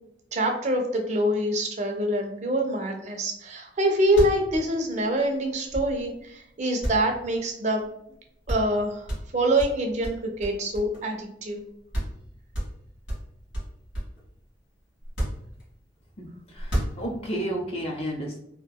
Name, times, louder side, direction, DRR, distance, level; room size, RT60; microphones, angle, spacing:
voice 1, 0.3-7.8 8.5-11.6, right 1 dB, 40° right, 4 dB, 0.4 m, -25 dB
sound 1, 3.7-3.8 4.0-6.2 6.8-7.9 8.1-8.2 8.5-8.8 9.1-11.2 11.6-11.7 11.9-12.2 12.5-14.2 15.0-16.0 16.5-17.4, equal, 80° left, 1.3 m, -32 dB
voice 2, 16.5-18.4, right 1 dB, 30° left, 1 dB, 0.4 m, -31 dB
2.8 x 2.4 x 2.2 m, 0.73 s
head